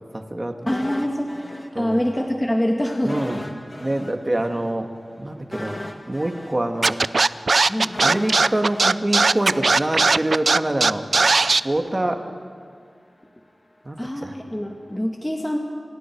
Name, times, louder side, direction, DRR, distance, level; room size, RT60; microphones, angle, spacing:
voice 1, 0.1-0.6 1.7-2.1 3.0-3.4 3.8-4.9 5.2-5.8 6.1-7.0 8.0-11.0 11.6-12.2 13.9-14.4, right 1 dB, 30° right, 4 dB, 2.1 m, -25 dB
sound 1, 0.7-2.3 2.6-2.7 3.1-10.2 10.5-10.6, left 1 dB, 30° left, 2.3 m, -37 dB
voice 2, 0.7-1.3 1.8-3.2 7.7-8.0 14.0-15.6, equal, 15° left, 0 dB, 2.2 m, -24 dB
Scratching (performance technique), 6.8-11.6, right 3 dB, 65° right, 0.5 m, -17 dB
29.0 x 26.0 x 4.8 m, 2.1 s
wide cardioid pair, 65°, 0 cm